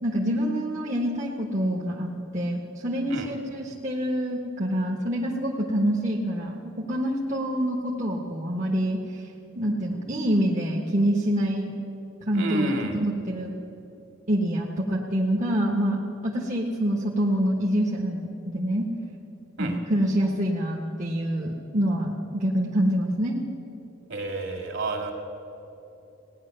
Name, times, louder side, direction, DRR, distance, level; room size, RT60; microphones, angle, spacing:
voice 1, 0.0-9.0 9.5-11.7 12.3-13.5 14.3-18.9 19.6-23.4, equal, 35° right, -2 dB, 1.2 m, -26 dB
voice 2, 12.3-13.0 19.6-19.8 24.1-25.1, right 2 dB, 55° right, 2 dB, 2.1 m, -29 dB
17.5 x 9.8 x 6.6 m, 2.9 s
head